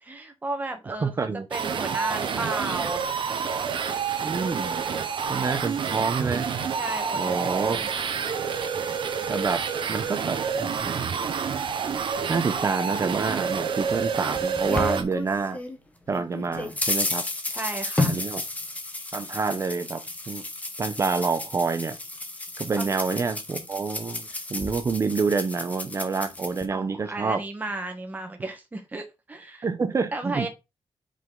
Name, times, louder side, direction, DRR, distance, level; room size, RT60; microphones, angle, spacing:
voice 1, 0.0-3.0 6.8-7.9 17.5-18.2 22.8-22.9 26.7-29.7 30.1-30.5, right 2 dB, 15° right, 1.2 m, -34 dB
voice 2, 0.9-1.5 4.2-4.8 5.3-6.5 7.1-7.8 9.3-9.6 9.9-11.2 12.3-15.6 16.1-17.2 18.1-18.4 19.1-20.0 20.3-20.4 20.8-22.0 22.6-27.4 29.6-30.5, right 4 dB, 35° right, 0.8 m, -27 dB
sound 1, 1.5-15.0, right 6 dB, 60° right, 1.0 m, -28 dB
sound 2, 13.9-15.8 16.1-26.6, left 2 dB, 15° left, 1.0 m, -32 dB
5.5 x 5.1 x 3.9 m
wide cardioid pair, 175°, 9 cm